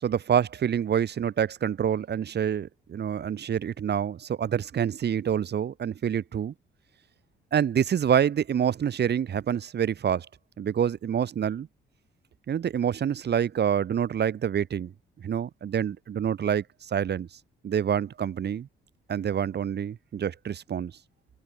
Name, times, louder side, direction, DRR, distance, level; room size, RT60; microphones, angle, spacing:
voice 1, 0.0-6.5 7.5-10.3 10.6-11.7 12.5-14.9 15.2-17.3 17.6-18.7 19.1-20.9, right 8 dB, 55° right, 4.0 m, -27 dB
cardioid pair, 90°, 20 cm